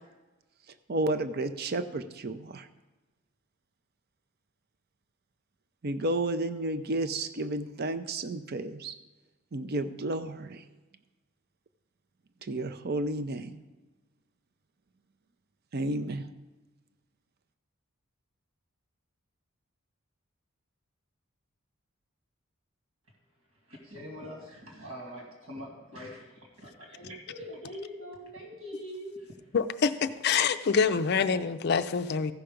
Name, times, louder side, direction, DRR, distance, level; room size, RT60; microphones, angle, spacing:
voice 1, 0.9-2.7 5.8-8.9 9.5-10.6 12.4-13.6 15.7-16.3, right 2 dB, 50° right, 10 dB, 0.6 m, -32 dB
voice 2, 23.7-29.5, equal, 75° right, 0 dB, 2.4 m, -43 dB
voice 3, 29.5-32.3, left 6 dB, 50° left, 10 dB, 0.4 m, -26 dB
15.0 x 5.8 x 5.1 m, 1.2 s
head